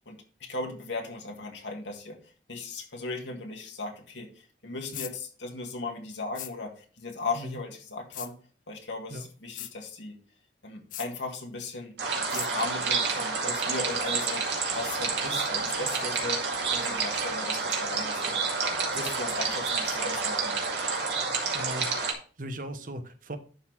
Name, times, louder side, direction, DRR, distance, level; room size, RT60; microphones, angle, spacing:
voice 1, 0.0-8.4 8.7-10.2 10.6-16.5 16.7-18.4 18.9-20.7, left 3 dB, 85° left, 2 dB, 1.7 m, -37 dB
sound 1, 4.9-5.1 6.3-6.5 8.1-8.3 9.5-9.7 10.9-11.1 12.3-12.5, left 13 dB, 45° left, 0.5 m, -38 dB
sound 2, 12.0-22.1, right 4 dB, 75° right, 2.1 m, -29 dB
voice 2, 21.5-23.4, equal, 45° right, 9 dB, 0.9 m, -38 dB
11.0 x 4.0 x 4.5 m, 0.39 s
head